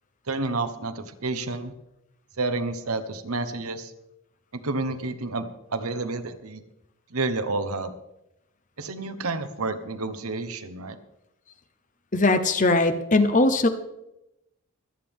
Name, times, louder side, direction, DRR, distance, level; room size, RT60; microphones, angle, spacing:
voice 1, 0.3-1.7 2.4-3.9 4.5-6.6 7.1-7.9 8.8-11.0, right 3 dB, 85° right, 10 dB, 1.1 m, -30 dB
voice 2, 12.1-13.7, left 2 dB, 35° left, 9 dB, 0.8 m, -20 dB
23.5 x 9.0 x 3.7 m, 0.88 s
head